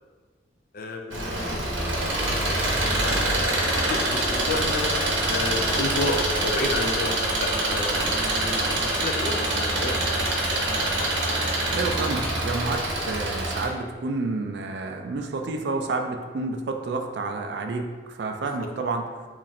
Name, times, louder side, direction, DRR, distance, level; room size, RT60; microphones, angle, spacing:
voice 1, 0.7-4.9 5.3-7.1 7.4-8.0 8.3-10.5, left 2 dB, 50° left, 3 dB, 0.4 m, -32 dB
Engine, 1.1-13.6, right 1 dB, 80° right, 0.8 m, -25 dB
voice 2, 11.7-19.1, right 3 dB, 60° right, 5 dB, 0.3 m, -29 dB
3.0 x 2.5 x 4.1 m, 1.5 s
head